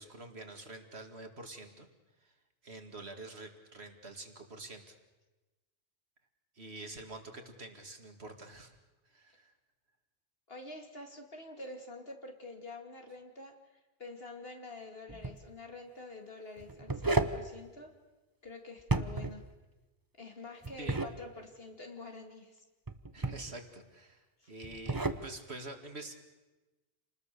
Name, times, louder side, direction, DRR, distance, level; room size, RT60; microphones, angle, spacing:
voice 1, 0.0-1.9 2.2-2.3 2.6-5.0 6.5-8.7 9.1-9.5 20.8-21.1 23.1-26.1, right 2 dB, 60° right, 4 dB, 2.6 m, -47 dB
voice 2, 10.5-13.6 14.0-17.9 18.4-19.5 20.2-22.6 24.4-24.5, left 2 dB, 55° left, 3 dB, 2.8 m, -47 dB
sound 1, 15.1-15.4 16.6-17.4 18.8-19.4 20.6-21.1 22.9-23.5 24.6-25.2, right 2 dB, 20° right, 1.0 m, -32 dB
28.5 x 20.0 x 6.9 m, 1.1 s
omnidirectional pair, 1.2 m